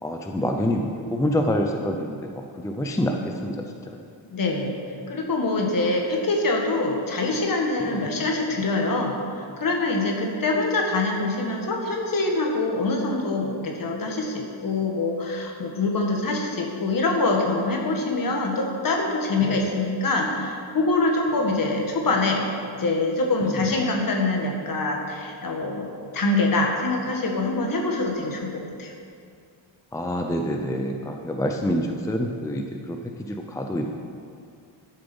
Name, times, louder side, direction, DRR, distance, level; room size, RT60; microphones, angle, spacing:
voice 1, 0.0-4.0 7.9-8.1 19.4-19.6 23.4-23.6 29.9-33.9, equal, 5° left, 3 dB, 0.5 m, -27 dB
voice 2, 4.3-4.7 5.1-22.4 22.8-28.9, left 2 dB, 45° left, 1 dB, 1.6 m, -24 dB
11.5 x 7.0 x 5.4 m, 2.3 s
wide cardioid pair, 145°, 46 cm